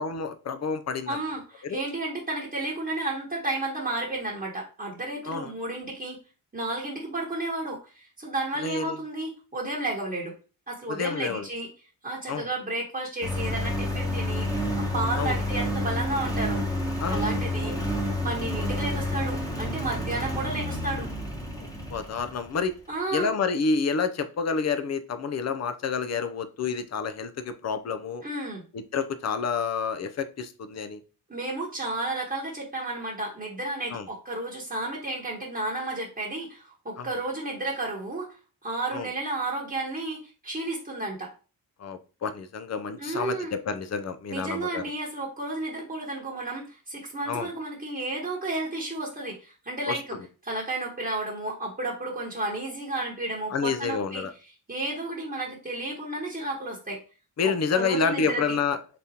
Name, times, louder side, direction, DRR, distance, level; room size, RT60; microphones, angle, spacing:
voice 1, 0.0-1.2 1.6-1.8 5.2-5.5 8.6-9.0 10.9-11.5 12.3-12.5 15.2-15.4 17.0-17.3 17.6-17.9 21.5-22.8 23.1-28.2 28.7-31.0 33.9-34.1 37.0-37.1 38.9-39.1 41.8-44.8 47.3-47.5 49.9-50.0 53.5-54.3 57.4-59.0, left 5 dB, 45° left, 10 dB, 0.6 m, -29 dB
voice 2, 1.1-6.2 6.5-10.3 10.7-11.7 12.0-16.6 17.1-17.7 18.2-21.1 22.9-23.3 28.2-28.6 31.3-38.4 38.6-40.2 40.4-41.3 43.0-43.5 44.3-50.0 50.4-54.2 54.7-57.0 57.4-58.6, right 2 dB, 25° right, -5 dB, 1.2 m, -32 dB
Engine, 13.2-22.7, left 1 dB, 10° left, 1.1 m, -29 dB
4.1 x 3.5 x 2.8 m, 0.34 s
cardioid pair, 70°, 38 cm